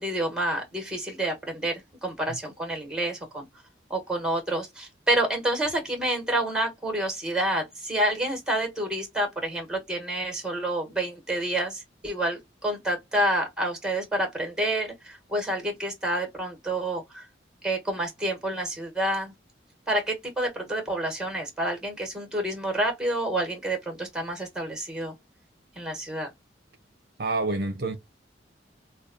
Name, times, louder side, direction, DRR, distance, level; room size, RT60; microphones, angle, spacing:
voice 1, 0.0-3.4 3.9-17.2 17.6-19.3 19.9-25.1 25.8-26.3, right 1 dB, 5° right, 1.3 m, -28 dB
voice 2, 27.2-28.0, right 3 dB, 50° right, 0.6 m, -28 dB
5.0 x 2.3 x 2.5 m
head